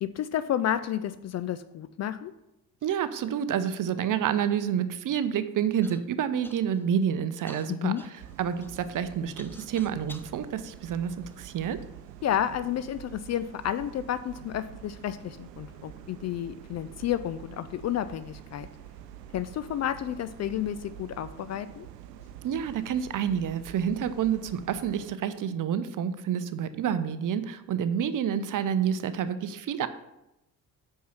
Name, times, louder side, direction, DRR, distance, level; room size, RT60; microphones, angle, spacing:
voice 1, 0.0-2.3 7.7-8.0 12.2-18.7 19.3-21.9, left 10 dB, 35° left, 13 dB, 0.4 m, -31 dB
voice 2, 2.8-11.8 22.4-29.9, right 8 dB, 40° right, 12 dB, 0.8 m, -29 dB
Human voice / Cough, 5.8-6.0 6.4-6.9 7.5-10.3 11.0-11.9 12.6-12.7 13.4-13.8, left 1 dB, 5° left, 0.9 m, -50 dB
sound 1, 8.2-25.1, right 10 dB, 75° right, 0.7 m, -47 dB
8.4 x 5.6 x 5.8 m, 0.90 s
figure-of-eight pair, 50°, 49 cm